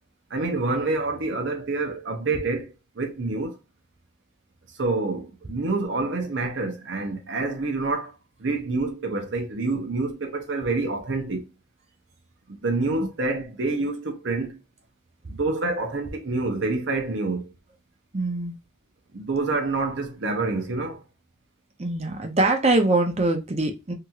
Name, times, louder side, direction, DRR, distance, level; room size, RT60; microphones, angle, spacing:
voice 1, 0.3-3.5 4.8-8.1 8.4-11.4 12.6-14.6 15.3-17.5 19.1-21.0, right 3 dB, 75° right, 0.7 m, -27 dB
voice 2, 18.1-18.5 21.8-23.9, right 2 dB, 35° right, 0.6 m, -23 dB
2.9 x 2.8 x 2.3 m
head